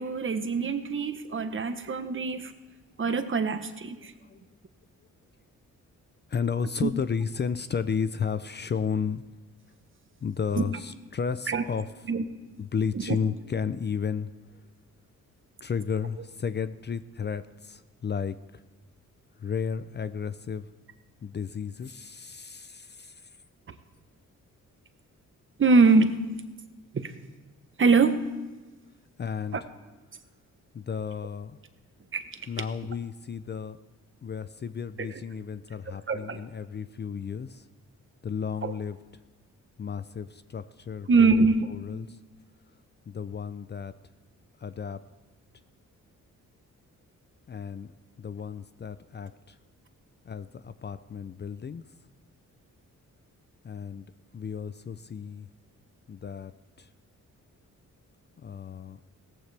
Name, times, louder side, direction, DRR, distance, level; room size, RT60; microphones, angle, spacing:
voice 1, 0.0-2.5 3.0-4.1 6.8-6.9 10.6-10.7 11.5-11.6 12.1-12.3 12.9-13.2 25.6-26.2 26.9-27.1 27.8-28.3 29.5-29.6 32.1-32.2 35.0-35.1 35.9-36.4 38.6-38.7 41.1-41.7, right 4 dB, 40° right, 9 dB, 1.0 m, -23 dB
voice 2, 4.0-4.4 6.3-9.2 10.2-11.9 12.6-14.3 15.6-18.4 19.4-20.7 21.2-23.2 29.2-29.6 30.7-31.6 32.5-33.8 34.2-37.6 38.2-39.0 39.8-42.2 43.1-43.9 44.6-45.0 47.5-47.9 48.2-49.6 50.3-51.8 53.6-54.1 54.3-55.5 56.1-56.5 56.8-56.9 58.4-59.0, left 6 dB, 35° left, 13 dB, 0.5 m, -33 dB
17.0 x 14.5 x 3.4 m, 1.2 s
cardioid pair, 100°, 31 cm